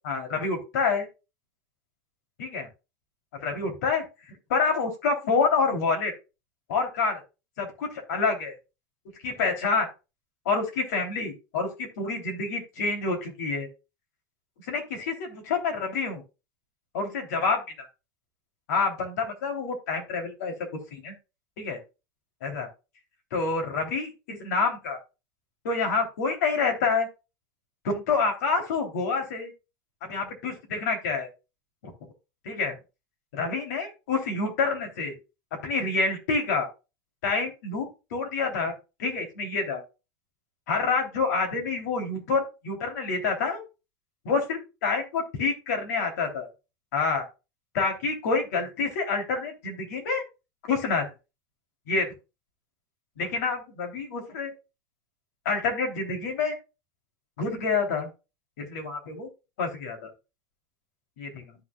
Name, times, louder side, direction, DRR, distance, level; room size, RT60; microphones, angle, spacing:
voice 1, 0.0-1.1 2.4-2.7 3.3-4.0 4.5-6.1 6.7-7.2 7.6-8.5 9.2-9.9 10.4-13.7 14.7-16.2 16.9-17.6 18.7-20.5 20.9-21.1 21.6-21.8 22.4-22.7 23.3-25.0 25.6-27.1 27.8-29.5 30.0-31.3 31.8-31.9 32.4-32.8 33.3-35.1 35.6-36.7 37.2-38.7 39.0-39.8 40.7-43.6 44.2-46.5 46.9-47.2 47.7-50.2 50.7-51.1 51.9-52.1 53.2-54.5 55.4-56.6 57.4-58.1 58.6-59.3 59.6-60.1 61.2-61.4, left 4 dB, 85° left, 3 dB, 3.2 m, -27 dB
13.5 x 6.1 x 2.4 m, 0.29 s
supercardioid pair, 175°, 9 cm